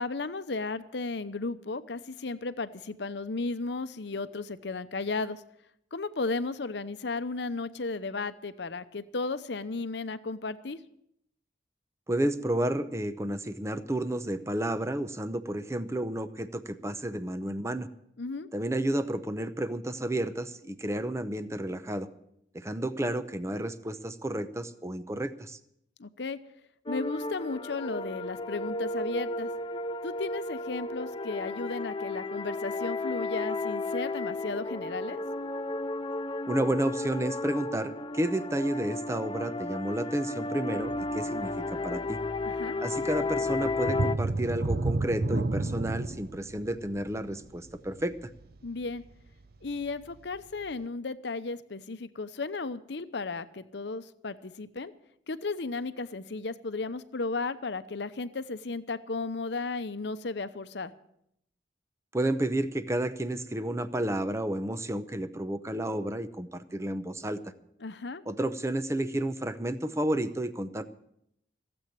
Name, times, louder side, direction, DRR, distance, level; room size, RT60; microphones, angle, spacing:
voice 1, 0.0-5.4 5.9-10.8 18.2-18.5 26.0-26.4 26.9-29.5 30.0-35.2 42.5-42.8 48.6-49.0 49.6-54.9 55.3-60.9 67.8-68.2, left 3 dB, 65° left, 12 dB, 0.8 m, -34 dB
voice 2, 12.1-17.9 18.5-22.1 22.5-25.6 36.5-41.5 41.8-42.2 42.8-48.3 62.1-67.4 68.3-70.8, right 1 dB, 15° right, 11 dB, 0.7 m, -31 dB
sound 1, 26.9-44.2, left 2 dB, 25° left, 0.5 m, -33 dB
sound 2, 43.8-49.3 49.7-49.9 50.4-50.5, right 2 dB, 55° right, 0.6 m, -31 dB
16.0 x 8.0 x 8.7 m, 0.76 s
head